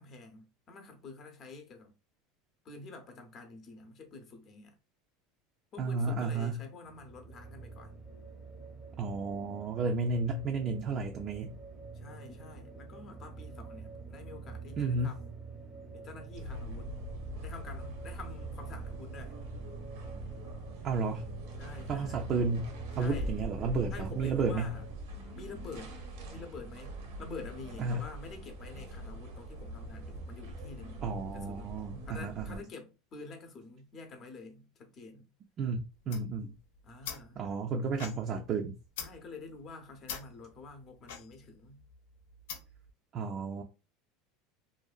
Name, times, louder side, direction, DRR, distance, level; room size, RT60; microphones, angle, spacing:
voice 1, 0.0-1.9 2.6-4.8 5.7-7.9 11.9-15.3 15.9-16.9 17.4-19.4 21.6-22.2 22.9-23.4 23.9-24.8 25.4-25.9 26.3-31.0 31.3-31.7 32.0-35.3 36.8-37.4 39.0-41.8, left 3 dB, 35° left, 0.7 m, -48 dB
voice 2, 5.8-6.6 9.0-11.6 14.8-15.1 20.8-21.2 21.9-22.7 23.0-24.7 27.8-28.0 31.0-32.6 35.6-36.5 37.4-38.8 43.1-43.6, right 4 dB, 40° right, 0.4 m, -32 dB
sound 1, 6.8-25.0, right 4 dB, 5° right, 0.7 m, -46 dB
sound 2, 16.3-32.6, equal, 80° right, 0.7 m, -43 dB
sound 3, 35.9-42.9, left 7 dB, 85° left, 0.5 m, -46 dB
2.6 x 2.3 x 2.4 m
supercardioid pair, 130°, 0 cm